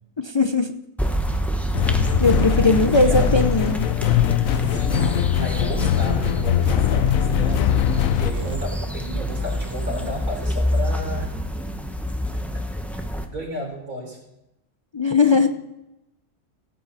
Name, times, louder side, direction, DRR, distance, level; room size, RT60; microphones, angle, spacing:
voice 1, 0.2-0.7 2.2-3.9 14.9-15.5, left 3 dB, 50° left, 6 dB, 0.3 m, -19 dB
sound 1, 1.0-13.2, equal, ahead, 0.8 m, -27 dB
sound 2, 1.7-8.3, left 11 dB, 75° left, 1.0 m, -21 dB
sound 3, 1.9-2.0 2.3-2.5 2.7-2.9 3.2-3.3 3.6-3.8 4.0-4.2 4.5-4.6 4.9-5.5 5.7-5.9 6.2-6.3 6.6-6.8 7.0-7.2 7.5-7.6 7.9-8.0 8.3-8.5, right 7 dB, 65° right, 1.5 m, -32 dB
voice 2, 2.5-3.4 4.5-11.4 12.3-12.7 13.3-14.2 15.3-15.5, equal, 80° right, -1 dB, 4.2 m, -34 dB
15.0 x 8.9 x 4.1 m, 0.90 s
omnidirectional pair, 1.4 m